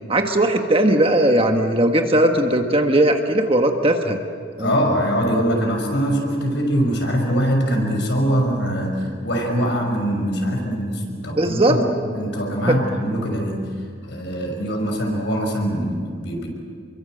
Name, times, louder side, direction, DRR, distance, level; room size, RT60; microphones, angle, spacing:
voice 1, 0.1-4.2 4.6-4.7 11.3-11.8 12.7-12.8, right 1 dB, 25° right, 4 dB, 1.5 m, -18 dB
voice 2, 4.6-11.8 12.1-13.6 14.0-16.5, equal, 60° left, 2 dB, 6.1 m, -22 dB
29.5 x 23.5 x 7.9 m, 2.2 s
head